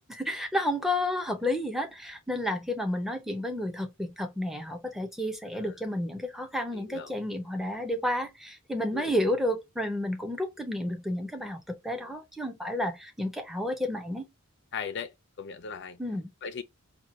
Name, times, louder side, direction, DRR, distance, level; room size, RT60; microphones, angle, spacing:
voice 1, 0.0-14.3 16.0-16.3, left 1 dB, ahead, 0.6 m, -31 dB
voice 2, 6.7-7.1 8.9-9.1 14.7-16.0 16.4-16.6, left 6 dB, 55° left, 0.5 m, -38 dB
4.4 x 2.3 x 2.6 m
head